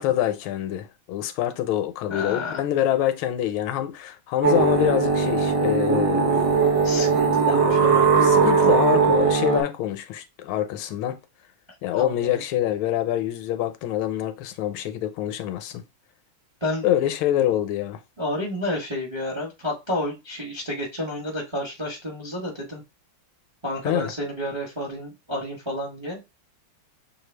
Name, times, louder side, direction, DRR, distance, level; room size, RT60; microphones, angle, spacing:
voice 1, 0.0-6.4 7.5-7.8 8.2-11.2 11.8-15.8 16.8-18.0 23.8-24.1, left 12 dB, 85° left, 1.4 m, -25 dB
voice 2, 2.1-2.6 6.8-8.2 11.9-12.3 16.6-16.9 18.2-22.8 23.6-26.2, left 1 dB, 25° right, 0.6 m, -30 dB
sound 1, 4.4-9.6, right 5 dB, 60° right, 1.5 m, -19 dB
6.4 x 2.3 x 3.3 m
omnidirectional pair, 2.3 m